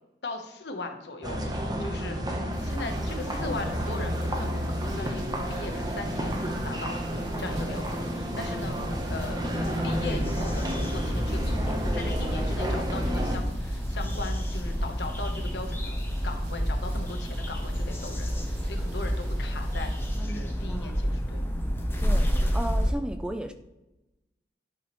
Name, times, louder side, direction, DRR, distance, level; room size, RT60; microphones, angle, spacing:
voice 1, 0.2-1.5 1.8-2.2 2.6-9.4 9.8-21.4 22.0-22.1, left 3 dB, 75° left, 4 dB, 1.0 m, -39 dB
sound 1, 1.2-13.4, equal, 20° right, 0.8 m, -30 dB
sound 2, 2.5-20.2, right 1 dB, 70° right, 1.6 m, -47 dB
voice 2, 3.2-3.6 19.9-21.0 22.0-23.5, equal, 5° right, 8 dB, 0.3 m, -36 dB
sound 3, 9.8-22.9, equal, 15° left, 0.8 m, -29 dB
11.0 x 4.8 x 3.0 m, 0.98 s
head